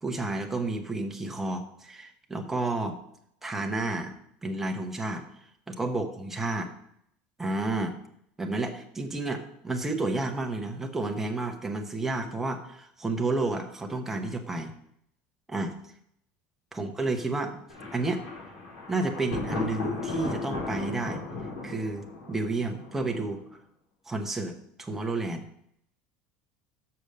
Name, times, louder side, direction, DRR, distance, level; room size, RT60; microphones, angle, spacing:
voice 1, 0.0-3.0 3.4-4.1 4.4-5.3 5.7-6.7 7.4-8.0 8.4-14.7 15.5-15.8 16.7-17.6 17.9-18.2 18.9-21.2 21.6-23.4 24.1-25.5, right 2 dB, 5° right, 4 dB, 0.9 m, -31 dB
Thunder, 17.7-23.5, left 3 dB, 85° left, 4.4 m, -36 dB
6.9 x 6.4 x 6.5 m, 0.72 s
cardioid pair, 165°, 4 cm